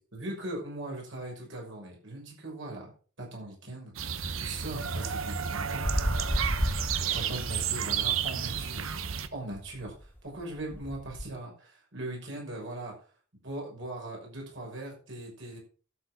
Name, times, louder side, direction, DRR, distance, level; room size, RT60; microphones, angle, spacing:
voice 1, 0.1-2.9 3.2-3.9 4.3-6.0 7.0-8.9 9.3-12.9 13.4-15.6, right 1 dB, 65° right, -1 dB, 6.1 m, -40 dB
sound 1, 4.0-9.3, right 7 dB, 90° right, 1.1 m, -32 dB
sound 2, 5.8-7.7 8.0-11.2, equal, 10° left, 2.1 m, -33 dB
12.5 x 7.2 x 6.3 m, 0.40 s
head